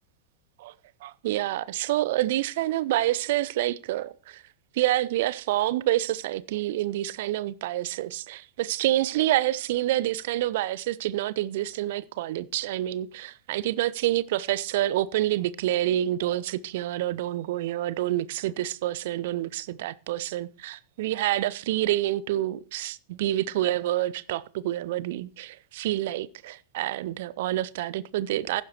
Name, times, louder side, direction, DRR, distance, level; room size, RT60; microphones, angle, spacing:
voice 1, 1.0-4.4 4.7-28.6, right 14 dB, 55° right, 0.6 m, -27 dB
15.0 x 11.0 x 3.0 m
figure-of-eight pair, 90°, 0 cm